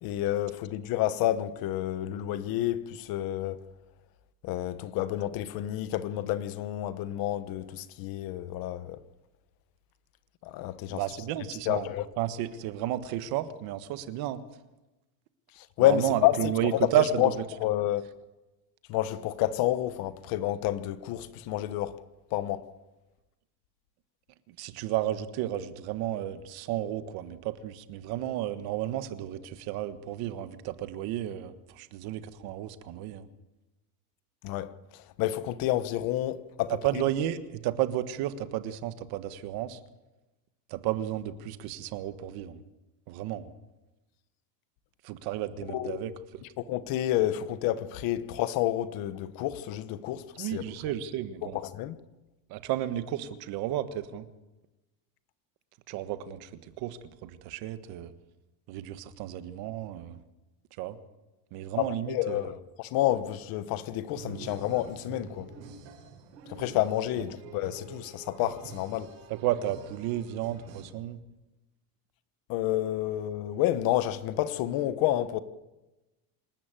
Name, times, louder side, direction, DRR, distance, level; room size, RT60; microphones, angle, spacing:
voice 1, 0.0-3.6 4.4-9.0 10.4-11.0 11.7-12.1 15.6-16.4 16.7-16.9 17.2-17.3 17.6-18.1 18.9-22.0 22.3-22.7 34.4-37.0 45.7-46.0 46.6-50.6 51.5-52.0 61.8-65.5 66.5-69.1 72.5-75.4, left 13 dB, 45° left, 1.2 m, -29 dB
voice 2, 10.9-14.4 15.8-17.4 24.5-33.3 36.7-39.8 40.7-42.6 43.1-43.5 45.0-46.4 50.3-51.6 52.5-54.3 55.9-58.1 58.7-60.2 60.8-61.0 61.5-62.5 69.3-71.2, right 12 dB, 45° right, 1.5 m, -32 dB
sound 1, 64.1-70.8, right 6 dB, 75° right, 5.8 m, -46 dB
26.5 x 13.5 x 9.1 m
cardioid pair, 170°, 50 cm